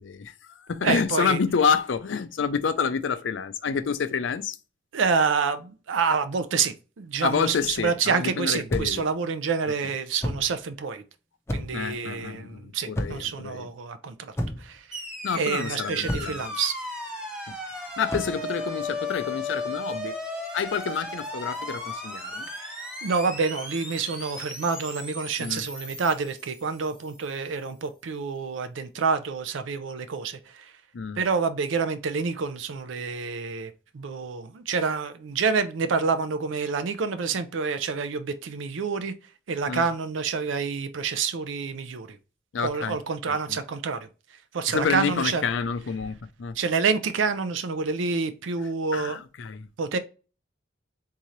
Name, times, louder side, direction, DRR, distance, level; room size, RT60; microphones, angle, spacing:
voice 1, 0.0-4.6 7.2-9.0 11.7-13.7 14.5-14.6 15.2-16.4 17.5-20.1 20.5-22.5 25.4-25.6 30.9-31.2 39.7-39.9 42.5-43.0 43.5-43.6 44.7-46.6 48.9-49.7, left 6 dB, 75° left, 0.5 m, -28 dB
voice 2, 0.8-1.4 4.9-11.0 11.5-14.9 15.3-16.7 22.6-22.7 23.0-30.8 31.2-39.1 39.5-42.2 42.6-44.1 44.5-45.4 46.5-49.2 49.8-50.0, right 5 dB, 85° right, 0.5 m, -28 dB
sound 1, 8.7-9.1 10.2-10.5 11.5-11.9 12.9-13.4 14.4-14.8 16.1-16.5 18.1-18.4, equal, 15° left, 0.5 m, -31 dB
sound 2, 14.9-27.2, left 2 dB, 5° right, 0.9 m, -36 dB
3.7 x 2.8 x 3.0 m
head